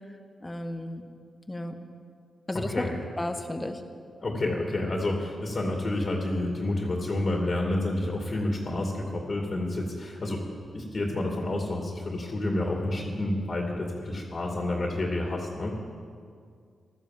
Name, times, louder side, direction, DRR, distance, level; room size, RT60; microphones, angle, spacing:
voice 1, 0.4-1.1 1.5-1.8 2.5-2.9 3.2-3.8, left 1 dB, 20° left, 7 dB, 1.5 m, -33 dB
voice 2, 2.5-3.0 4.2-10.4 10.7-15.7, left 1 dB, 45° left, 1 dB, 2.6 m, -29 dB
15.0 x 12.0 x 7.8 m, 2.2 s
cardioid pair, 60°, 0 cm